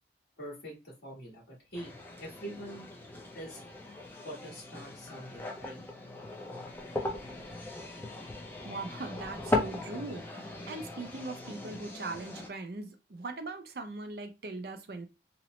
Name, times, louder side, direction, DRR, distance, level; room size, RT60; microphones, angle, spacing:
voice 1, 0.4-1.9 2.2-2.9 3.3-3.6 4.2-5.9, right 1 dB, 60° left, 1.4 m, -44 dB
sound 1, 1.7-12.5, left 2 dB, 10° left, 0.4 m, -38 dB
voice 2, 8.6-15.1, right 3 dB, 55° right, 0.5 m, -40 dB
2.9 x 2.0 x 3.0 m
head